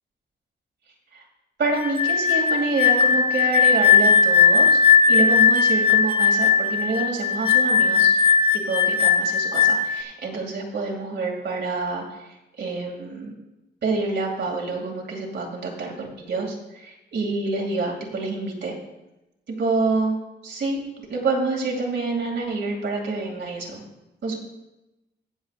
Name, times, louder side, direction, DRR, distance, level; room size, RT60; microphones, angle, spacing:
voice 1, 1.6-8.2 8.5-12.3 12.6-13.3 13.8-18.7 19.5-20.2 20.4-23.8 24.2-24.4, right 3 dB, 65° right, 0 dB, 2.4 m, -27 dB
sound 1, 1.8-10.0, left 6 dB, 25° left, 0.7 m, -18 dB
22.0 x 7.5 x 2.4 m, 0.97 s
wide cardioid pair, 140°, 19 cm